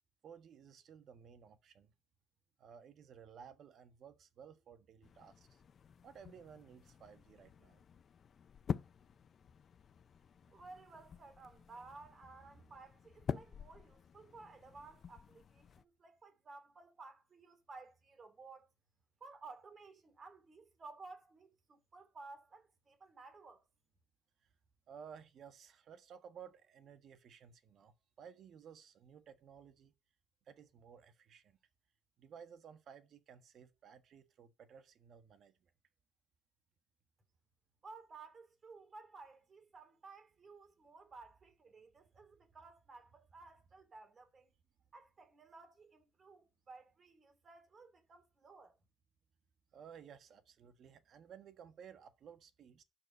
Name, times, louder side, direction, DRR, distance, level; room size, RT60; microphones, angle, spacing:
voice 1, 0.2-1.9 2.6-5.6 6.0-7.8 11.8-11.9 12.5-12.6 24.9-29.9 30.5-31.6 32.2-35.7 49.7-52.8, right 7 dB, 50° right, 1.4 m, -56 dB
sound 1, 5.0-15.8, left 7 dB, 40° left, 0.4 m, -47 dB
voice 2, 10.5-18.7 19.2-23.6 37.8-44.5 44.9-48.8, right 3 dB, 30° right, 2.5 m, -56 dB
12.0 x 4.4 x 6.7 m
cardioid pair, 125°, 0 cm